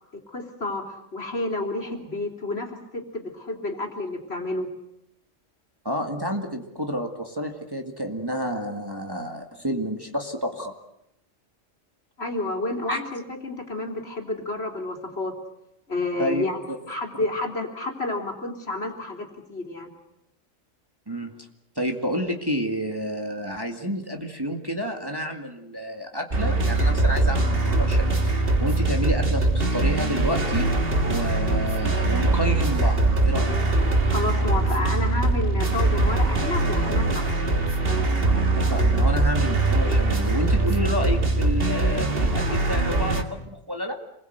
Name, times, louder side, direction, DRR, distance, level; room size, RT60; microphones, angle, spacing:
voice 1, 0.3-4.7 12.2-15.3 15.9-16.6 16.9-19.9 34.1-37.5, left 2 dB, 50° left, 2 dB, 3.5 m, -30 dB
voice 2, 5.8-10.7 12.9-13.0 16.2-16.8 21.1-21.3 21.8-28.2 28.6-30.7 31.0-33.6 38.3-44.0, equal, 15° right, 2 dB, 2.1 m, -30 dB
sound 1, 26.3-43.2, right 2 dB, 45° right, 2.0 m, -22 dB
28.0 x 21.0 x 8.0 m, 0.83 s
omnidirectional pair, 1.4 m